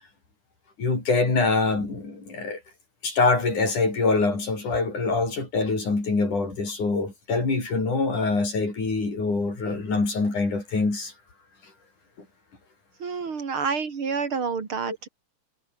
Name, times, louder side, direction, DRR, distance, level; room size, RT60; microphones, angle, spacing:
voice 1, 0.8-2.6 3.0-11.1 14.9-15.0, left 3 dB, 75° left, 9.6 m, -24 dB
voice 2, 13.0-15.1, right 5 dB, 45° right, 3.1 m, -28 dB
omnidirectional pair, 3.5 m